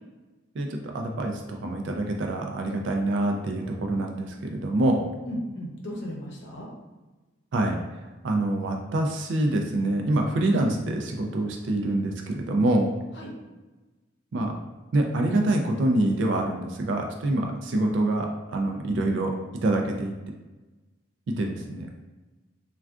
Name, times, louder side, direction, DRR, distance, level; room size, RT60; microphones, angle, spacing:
voice 1, 0.5-5.0 7.5-7.8 8.2-12.9 14.3-14.5 14.9-19.4 19.6-20.1 21.3-21.9, right 1 dB, 65° right, 2 dB, 0.3 m, -26 dB
voice 2, 5.2-6.7 13.1-13.3, equal, 60° left, -2 dB, 0.7 m, -35 dB
3.5 x 2.3 x 2.4 m, 1.2 s
head